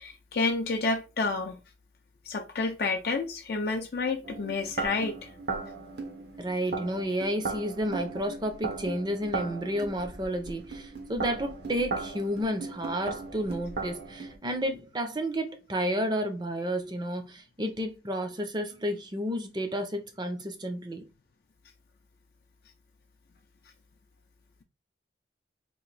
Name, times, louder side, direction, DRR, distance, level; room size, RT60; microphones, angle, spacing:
voice 1, 0.0-1.6 2.3-5.3, left 3 dB, 55° left, 0.4 m, -29 dB
sound 1, 4.2-14.4, right 3 dB, 65° right, 0.8 m, -37 dB
voice 2, 6.4-21.0, equal, 25° right, 0.5 m, -31 dB
3.0 x 2.5 x 4.0 m
head